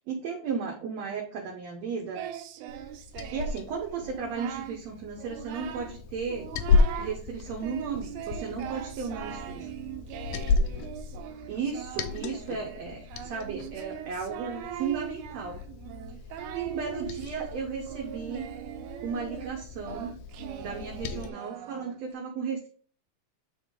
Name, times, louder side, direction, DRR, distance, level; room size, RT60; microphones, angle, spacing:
voice 1, 0.1-2.3 3.3-6.5 7.0-9.7 11.5-15.6 16.5-18.5 19.0-20.1 20.6-22.7, right 5 dB, 70° right, 0 dB, 1.9 m, -35 dB
Singing, 2.1-3.6 4.0-4.8 5.2-6.0 6.3-7.2 7.6-22.1, right 11 dB, 85° right, 2.1 m, -41 dB
Liquid, 2.7-21.3, left 4 dB, 85° left, 2.0 m, -33 dB
9.3 x 3.5 x 3.6 m, 0.44 s
omnidirectional pair, 3.5 m